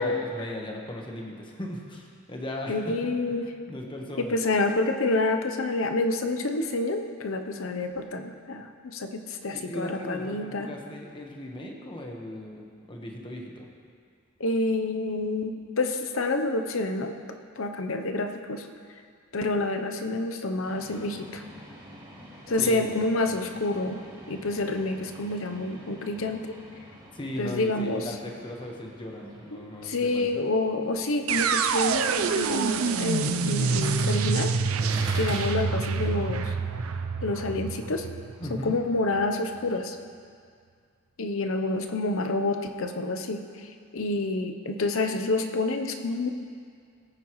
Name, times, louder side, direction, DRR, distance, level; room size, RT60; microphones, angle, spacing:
voice 1, 0.0-2.9 3.3-3.4 3.7-4.3 9.5-13.7 22.6-23.0 27.1-30.3 38.4-38.7, left 1 dB, 25° left, 0 dB, 1.2 m, -37 dB
voice 2, 2.7-3.5 4.2-10.7 14.4-17.1 17.6-18.7 19.3-21.4 22.5-24.0 24.3-26.5 27.4-28.1 29.5-34.5 35.2-36.5 37.2-38.1 38.5-40.0 41.2-43.4 43.9-46.3, left 2 dB, 70° left, 6 dB, 0.8 m, -28 dB
sound 1, 20.6-34.3, equal, 20° right, 2.2 m, -50 dB
sound 2, 31.2-31.5 33.8-35.8 36.1-36.2, right 3 dB, 65° right, 1.3 m, -37 dB
sound 3, 31.3-39.2, right 5 dB, 80° right, 0.5 m, -27 dB
18.0 x 9.4 x 3.1 m, 2.1 s
head